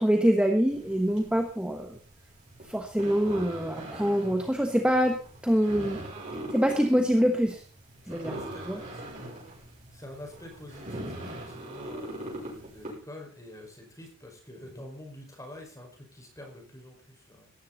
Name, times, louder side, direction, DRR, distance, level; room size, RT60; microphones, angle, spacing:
voice 1, 0.0-2.0 2.6-5.2 5.4-6.0 6.5-7.6 8.1-8.4 8.7-8.8, equal, 5° right, 4 dB, 1.1 m, -25 dB
sound 1, 0.7-12.9, right 1 dB, 35° right, 7.7 m, -41 dB
voice 2, 8.0-9.2 9.9-17.5, left 1 dB, 15° left, 2 dB, 5.1 m, -47 dB
17.0 x 14.0 x 4.0 m, 0.41 s
head